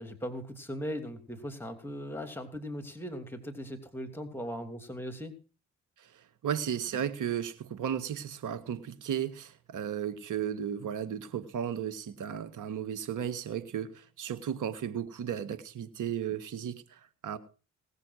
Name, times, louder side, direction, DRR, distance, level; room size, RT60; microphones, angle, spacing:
voice 1, 0.0-5.3, equal, 5° left, 2.9 m, -39 dB
voice 2, 6.4-17.4, right 9 dB, 70° right, 1.7 m, -34 dB
18.5 x 6.8 x 6.4 m
supercardioid pair, 55°, 32 cm